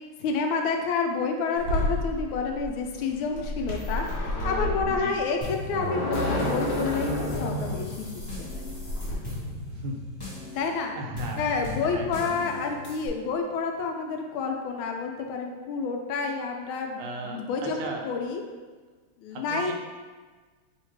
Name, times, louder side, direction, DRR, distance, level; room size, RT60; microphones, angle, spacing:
voice 1, 0.2-4.0 4.4-8.7 10.5-11.0 11.3-18.4 19.2-19.7, left 4 dB, 85° left, 3 dB, 1.4 m, -29 dB
sound 1, 1.6-9.1, left 1 dB, 65° left, 1.3 m, -30 dB
voice 2, 4.9-5.2 9.7-10.1 10.4-10.6 10.9-11.5 11.9-12.5 17.0-18.1 19.3-19.7, right 2 dB, 90° right, 1 dB, 1.5 m, -37 dB
sound 2, 5.4-13.1, left 2 dB, 35° left, 1.5 m, -38 dB
3.3 x 2.8 x 4.5 m, 1.4 s
omnidirectional pair, 2.2 m